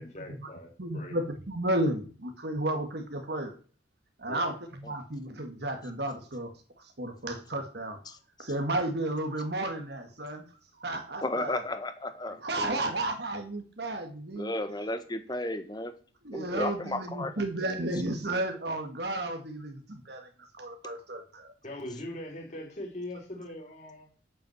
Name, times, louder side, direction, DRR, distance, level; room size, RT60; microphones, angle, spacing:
voice 1, 0.0-1.2 4.3-4.6 21.6-24.1, left 1 dB, 40° left, 4.3 m, -41 dB
voice 2, 0.8-3.6 4.2-4.6 4.8-6.5 7.0-8.0 8.4-10.4 10.8-11.6 12.4-14.5 16.2-20.3 20.6-21.5, right 1 dB, 60° right, 1.8 m, -33 dB
voice 3, 11.2-12.8 14.3-15.9 16.3-17.4, left 2 dB, 25° left, 1.5 m, -34 dB
8.8 x 8.7 x 7.8 m
head